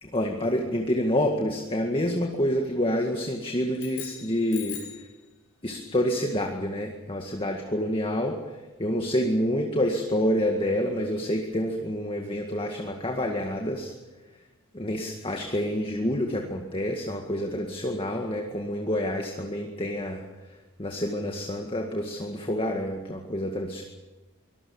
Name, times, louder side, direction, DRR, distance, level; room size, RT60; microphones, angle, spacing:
voice 1, 0.0-4.8 5.6-8.4 8.8-13.9 14.7-20.2 20.8-23.8, equal, 25° left, 2 dB, 1.9 m, -28 dB
sound 1, 3.7-5.1, left 9 dB, 80° left, 6.8 m, -40 dB
24.5 x 20.0 x 7.2 m, 1.1 s
head